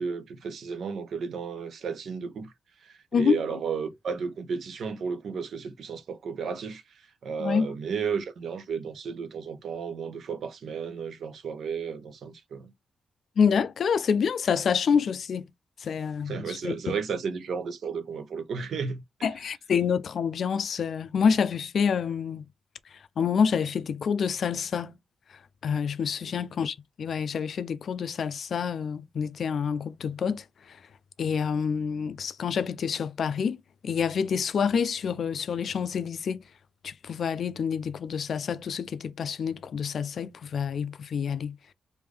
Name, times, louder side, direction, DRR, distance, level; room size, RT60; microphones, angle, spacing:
voice 1, 0.0-2.5 2.8-6.8 7.2-12.7 16.3-19.0 26.2-26.3, right 5 dB, 70° right, 0.8 m, -33 dB
voice 2, 13.4-15.5 15.8-17.0 19.2-22.4 23.2-25.0 25.6-30.8 31.2-33.6 33.8-36.4 36.8-41.6, left 6 dB, 60° left, 0.4 m, -27 dB
3.4 x 2.6 x 3.3 m
cardioid pair, 115°, 0 cm